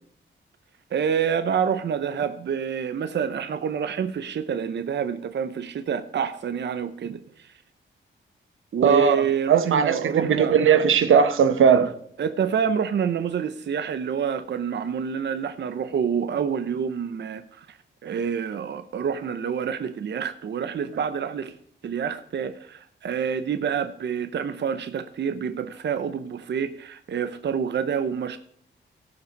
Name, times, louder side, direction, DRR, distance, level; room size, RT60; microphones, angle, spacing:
voice 1, 0.9-7.5 8.7-10.6 12.2-21.5 21.8-28.4, right 7 dB, 60° right, 0.7 m, -27 dB
voice 2, 8.8-9.2 9.5-11.9, right 7 dB, 90° right, 1.0 m, -18 dB
16.5 x 5.8 x 5.2 m
wide cardioid pair, 110°, 20 cm